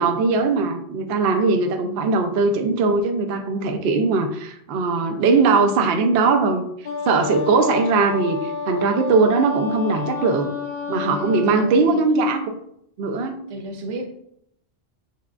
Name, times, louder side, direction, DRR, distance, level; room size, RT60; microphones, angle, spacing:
voice 1, 0.0-6.7 7.1-10.5 10.9-12.5 13.0-13.4, right 4 dB, 65° right, 5 dB, 0.7 m, -20 dB
voice 2, 1.8-2.2 10.8-12.0 13.5-14.1, right 1 dB, 90° right, 4 dB, 1.0 m, -33 dB
Wind instrument woodwind instrument, 6.8-11.7, left 5 dB, 60° left, 1.0 m, -30 dB
6.6 x 2.3 x 2.3 m, 0.74 s
omnidirectional pair, 1.2 m